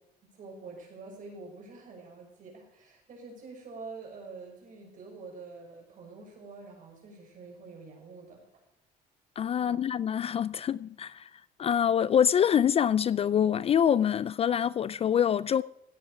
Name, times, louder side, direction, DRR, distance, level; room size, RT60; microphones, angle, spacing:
voice 1, 0.3-8.4 9.6-9.9, right 4 dB, 50° right, 5.9 m, -46 dB
voice 2, 9.4-11.3 11.6-15.6, left 8 dB, 35° left, 0.3 m, -25 dB
15.5 x 9.6 x 4.8 m
cardioid pair, 110°, 17 cm